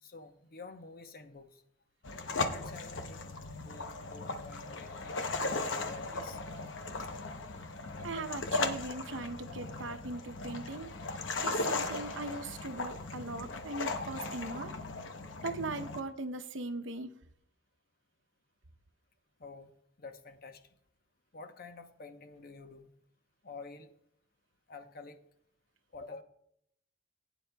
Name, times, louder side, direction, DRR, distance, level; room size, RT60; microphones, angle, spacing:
voice 1, 0.0-1.6 2.3-3.3 3.5-5.2 5.5-6.4 19.4-19.7 20.0-20.7 21.3-22.9 23.4-23.9 24.7-25.2 25.9-26.2, left 3 dB, 55° left, 8 dB, 0.8 m, -49 dB
sound 1, 2.0-16.0, left 3 dB, 80° left, 0.8 m, -37 dB
voice 2, 8.0-10.9 11.4-14.7 15.4-17.1, right 2 dB, 90° right, 9 dB, 0.8 m, -39 dB
16.0 x 9.2 x 2.3 m, 0.71 s
head